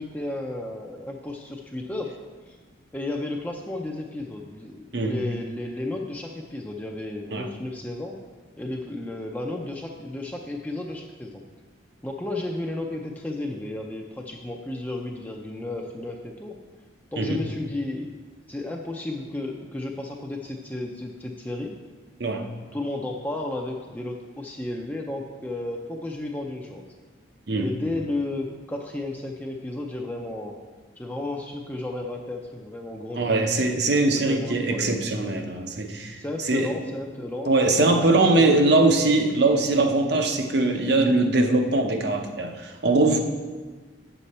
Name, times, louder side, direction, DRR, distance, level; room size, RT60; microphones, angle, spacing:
voice 1, 0.0-2.1 2.5-2.6 2.9-8.2 8.6-11.4 12.0-16.6 17.1-18.1 18.5-21.7 22.7-26.8 27.6-30.6 31.0-33.4 34.1-35.0 36.2-38.6, left 2 dB, 10° left, 0 dB, 0.5 m, -33 dB
voice 2, 33.1-36.2 36.4-36.7 37.5-43.2, right 2 dB, 55° right, 5 dB, 0.8 m, -21 dB
8.3 x 6.8 x 4.2 m, 1.4 s
head